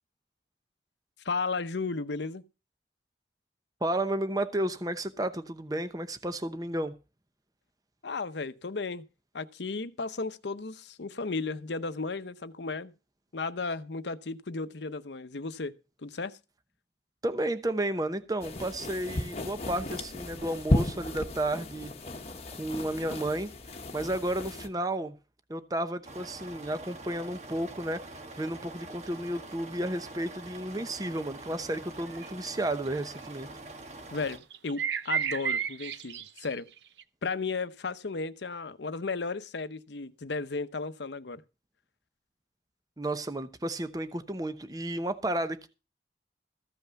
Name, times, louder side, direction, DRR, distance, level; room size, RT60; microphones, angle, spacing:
voice 1, 1.2-2.4 8.0-9.0 9.3-12.9 13.3-16.4 34.1-36.7 37.2-41.4, left 4 dB, 80° left, 0.8 m, -34 dB
voice 2, 3.8-6.9 17.2-21.9 22.5-23.5 23.9-25.1 25.5-28.0 28.4-33.5 43.0-45.7, right 1 dB, 20° right, 0.9 m, -32 dB
sound 1, 18.4-24.7, left 1 dB, 35° left, 1.1 m, -34 dB
Truck engine running front, 26.0-34.4, right 2 dB, 40° right, 1.2 m, -45 dB
sound 2, 32.1-32.3 32.7-32.9 34.2-37.0, right 7 dB, 85° right, 0.7 m, -32 dB
14.5 x 5.6 x 6.9 m
head